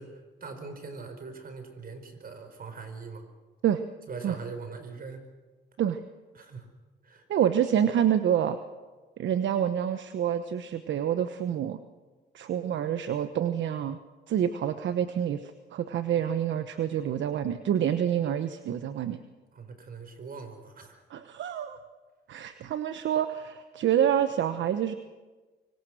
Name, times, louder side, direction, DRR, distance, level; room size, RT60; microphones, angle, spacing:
voice 1, 0.0-3.3 4.1-5.2 6.3-6.7 7.0-7.2 19.5-21.0, right 4 dB, 45° right, 8 dB, 4.8 m, -42 dB
voice 2, 7.3-8.6 9.2-11.8 12.3-14.0 14.3-19.2 21.1-21.8 22.3-24.9, right 9 dB, 70° right, 10 dB, 1.1 m, -27 dB
24.5 x 24.5 x 6.4 m, 1.3 s
cardioid pair, 90°, 20 cm